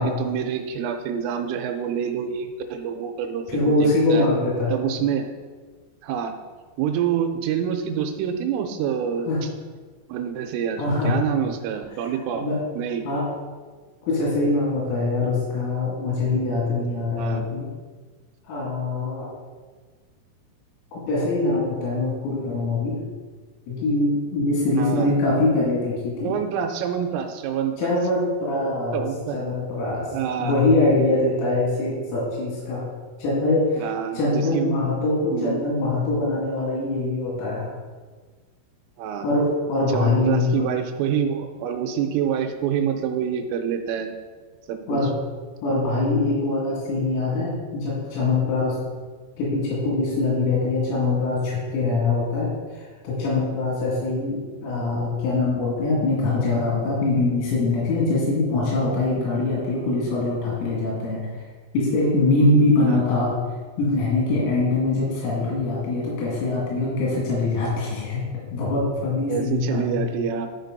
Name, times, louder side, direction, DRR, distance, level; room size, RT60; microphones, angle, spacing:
voice 1, 0.0-4.3 4.7-5.3 6.0-6.3 6.8-9.3 10.1-12.5 12.7-13.1 17.2-17.5 24.8-25.1 26.2-27.9 28.9-29.4 30.1-30.6 33.8-34.7 35.3-35.6 39.0-39.3 39.9-44.1 44.7-45.0 62.9-63.0 69.3-70.5, right 8 dB, 85° right, 5 dB, 3.1 m, -27 dB
voice 2, 3.5-4.8 9.3-9.4 10.8-11.2 12.3-12.6 13.0-13.2 14.1-17.7 18.4-19.3 21.1-23.0 23.7-26.3 27.8-29.1 29.3-32.9 33.2-33.9 34.1-37.7 39.2-40.7 44.9-45.1 45.6-48.8 49.4-61.3 61.7-63.3 63.8-70.1, left 2 dB, 85° left, -6 dB, 4.9 m, -23 dB
12.5 x 5.2 x 4.0 m, 1.5 s
omnidirectional pair, 6.0 m